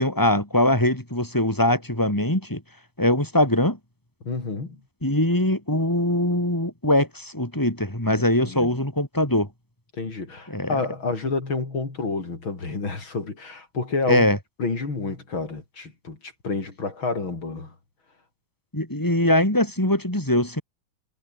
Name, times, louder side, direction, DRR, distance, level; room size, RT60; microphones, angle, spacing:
voice 1, 0.0-2.6 3.0-3.8 5.0-9.5 10.5-10.8 14.1-14.4 18.7-20.6, left 1 dB, 10° left, 6.4 m, -22 dB
voice 2, 4.2-4.8 8.4-8.7 9.9-14.2 14.6-17.7, left 3 dB, 80° left, 5.4 m, -29 dB
omnidirectional pair, 2.2 m